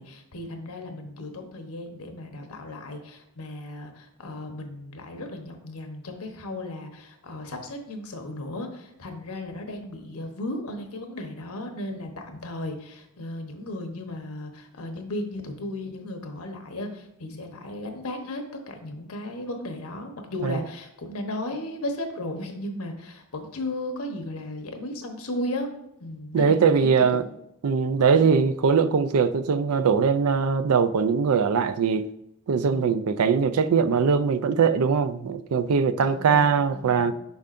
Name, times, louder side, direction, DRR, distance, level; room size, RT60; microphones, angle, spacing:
voice 1, 0.0-25.7 26.0-26.9 27.2-27.3 28.2-28.3 32.7-33.0 36.0-37.1, left 1 dB, 80° left, 1.0 m, -35 dB
voice 2, 26.3-27.3 27.6-32.1 32.5-37.1, right 6 dB, 75° right, 0.4 m, -21 dB
7.0 x 5.5 x 2.6 m
head